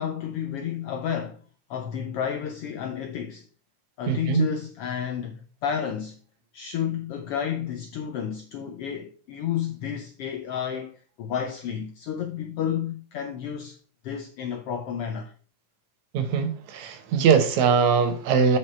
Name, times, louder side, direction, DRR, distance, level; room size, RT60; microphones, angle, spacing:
voice 1, 0.0-1.4 1.7-3.5 4.0-6.2 6.5-13.8 14.0-15.3, left 8 dB, 75° left, 1.3 m, -31 dB
voice 2, 4.1-4.4 16.1-18.6, right 6 dB, 75° right, 2.3 m, -21 dB
8.6 x 4.9 x 4.3 m
omnidirectional pair, 3.4 m